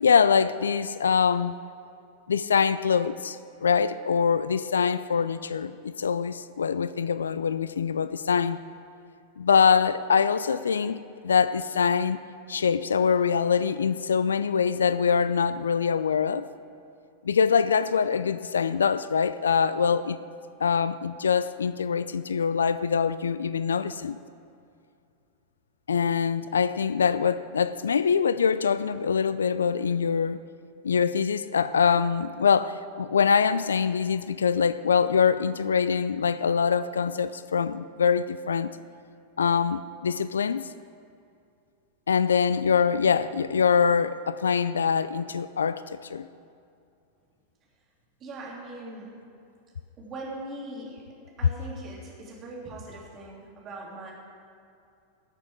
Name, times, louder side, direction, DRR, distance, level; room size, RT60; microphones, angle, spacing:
voice 1, 0.0-1.6 2.3-8.6 9.4-12.2 12.5-16.5 17.2-20.2 20.6-24.2 25.9-30.4 30.8-38.7 39.4-40.7 42.1-45.8 46.1-46.3, left 6 dB, 70° left, 15 dB, 0.3 m, -24 dB
voice 2, 48.2-49.1 50.0-51.0 51.4-54.1, right 2 dB, 30° right, -4 dB, 3.2 m, -40 dB
19.0 x 6.9 x 4.9 m, 2.5 s
figure-of-eight pair, 90°, 0 cm